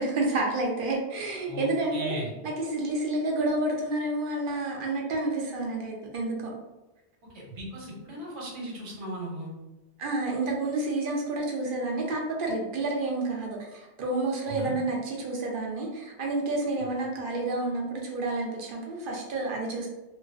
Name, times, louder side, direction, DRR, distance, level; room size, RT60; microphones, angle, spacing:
voice 1, 0.0-2.1 2.4-6.5 10.0-19.9, right 2 dB, 55° right, -1 dB, 0.7 m, -29 dB
voice 2, 1.5-2.3 7.3-9.5 14.4-14.8 16.8-16.9, right 1 dB, 80° right, -3 dB, 1.1 m, -37 dB
2.5 x 2.3 x 2.4 m, 1.0 s
omnidirectional pair, 1.1 m